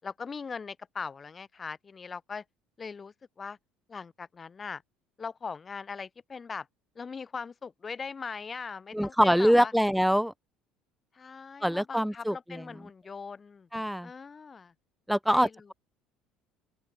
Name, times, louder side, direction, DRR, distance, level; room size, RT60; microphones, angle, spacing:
voice 1, 0.0-2.4 2.8-3.6 3.9-4.8 5.2-6.7 7.0-9.7 11.1-13.7 14.0-14.7 15.3-15.7, left 5 dB, 20° left, 5.7 m, -40 dB
voice 2, 8.9-10.3 11.6-12.6 13.7-14.1 15.1-15.7, equal, ahead, 3.4 m, -24 dB
open air
cardioid pair, 140°, 0 cm